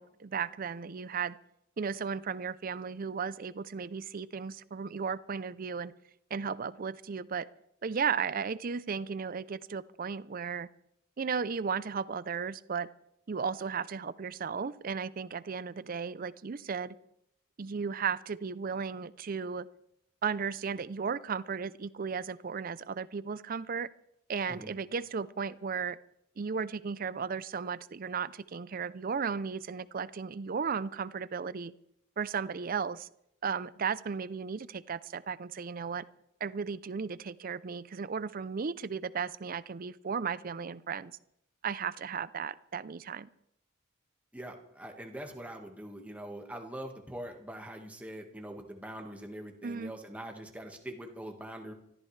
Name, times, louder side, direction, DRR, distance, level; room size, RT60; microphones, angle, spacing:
voice 1, 0.0-1.4 1.8-5.9 6.3-7.5 7.8-10.7 11.2-12.9 13.3-17.0 17.6-19.7 20.2-23.9 24.3-26.0 26.4-31.7 32.2-33.1 33.4-36.0 36.4-41.2 41.6-43.3 49.6-49.9, right 6 dB, 45° right, 17 dB, 0.5 m, -35 dB
voice 2, 44.3-51.7, right 1 dB, 5° right, 3 dB, 1.6 m, -43 dB
25.0 x 14.0 x 3.3 m, 0.75 s
head